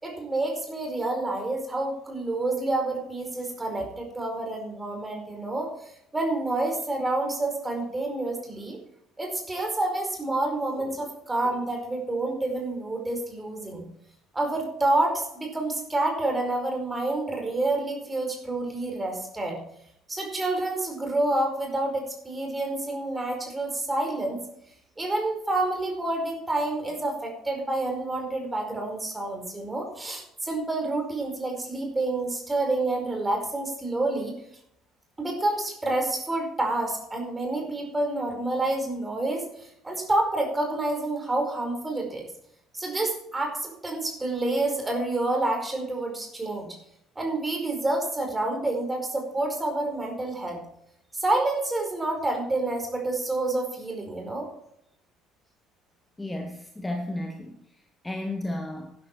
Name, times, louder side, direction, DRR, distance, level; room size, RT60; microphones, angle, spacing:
voice 1, 0.0-5.7 6.1-8.8 9.2-13.8 14.3-19.6 20.1-24.4 25.0-34.3 35.2-39.4 39.8-42.3 42.7-46.8 47.1-50.6 51.1-54.5, right 2 dB, 15° right, 2 dB, 5.0 m, -28 dB
voice 2, 56.2-57.6 58.0-58.9, left 1 dB, 10° left, 3 dB, 1.9 m, -33 dB
11.5 x 11.5 x 4.7 m, 0.75 s
figure-of-eight pair, 55°, 0 cm